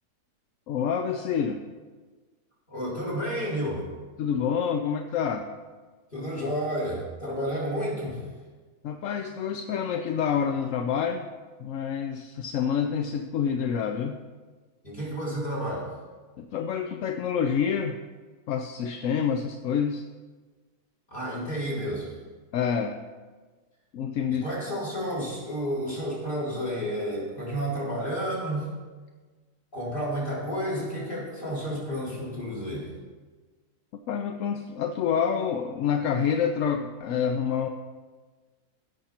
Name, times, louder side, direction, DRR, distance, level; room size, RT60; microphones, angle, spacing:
voice 1, 0.7-1.6 4.2-5.5 8.8-11.3 11.6-14.2 16.4-18.0 18.5-20.0 22.5-23.0 23.9-24.4 33.9-37.7, left 7 dB, 65° left, 5 dB, 0.9 m, -27 dB
voice 2, 2.7-3.9 6.1-8.2 14.8-15.9 21.1-22.1 24.3-28.7 29.7-32.9, equal, 35° left, -6 dB, 4.1 m, -31 dB
16.0 x 6.4 x 4.3 m, 1.4 s
omnidirectional pair, 1.7 m